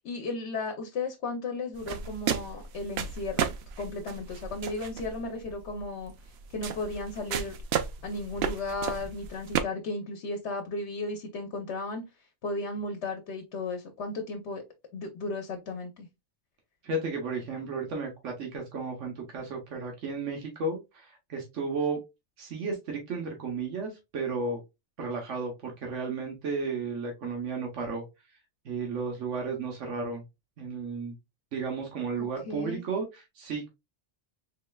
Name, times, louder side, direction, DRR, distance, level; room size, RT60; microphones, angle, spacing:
voice 1, 0.0-6.1 6.5-7.5 8.0-12.1 12.4-14.6 14.9-16.1 32.1-32.8, left 2 dB, 70° left, 5 dB, 1.0 m, -35 dB
sound 1, 1.7-9.6, right 8 dB, 65° right, 0.8 m, -34 dB
voice 2, 16.8-22.0 22.4-24.6 25.0-28.0 28.6-30.2 30.6-31.1 31.5-33.7, right 4 dB, 90° right, 1 dB, 1.4 m, -33 dB
4.3 x 3.2 x 2.2 m, 0.23 s
omnidirectional pair, 1.2 m